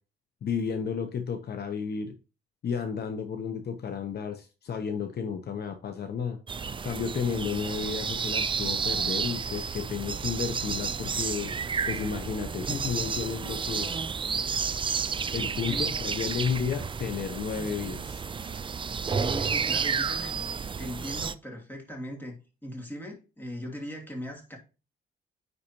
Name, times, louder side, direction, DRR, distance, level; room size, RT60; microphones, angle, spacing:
voice 1, 0.4-2.1 2.6-6.4 6.8-11.5 11.9-13.9 15.3-18.2, left 6 dB, 55° left, 0.9 m, -32 dB
sound 1, 6.5-21.3, right 6 dB, 25° right, 0.4 m, -31 dB
voice 2, 19.0-20.4 20.8-22.3 22.6-24.6, equal, 10° left, 2.9 m, -38 dB
9.8 x 4.2 x 2.9 m
cardioid pair, 90°, 20 cm